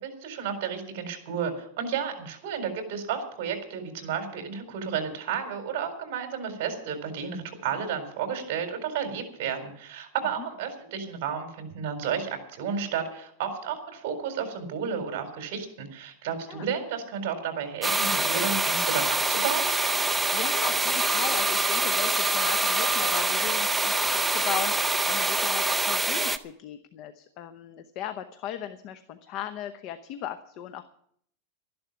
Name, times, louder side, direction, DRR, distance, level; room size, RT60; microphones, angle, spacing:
voice 1, 0.0-19.7, right 7 dB, 55° right, 6 dB, 4.0 m, -32 dB
sound 1, 17.8-26.4, right 2 dB, 5° right, 0.6 m, -25 dB
voice 2, 20.3-30.8, left 10 dB, 40° left, 10 dB, 0.8 m, -37 dB
13.0 x 11.5 x 7.1 m, 0.66 s
supercardioid pair, 155°, 0 cm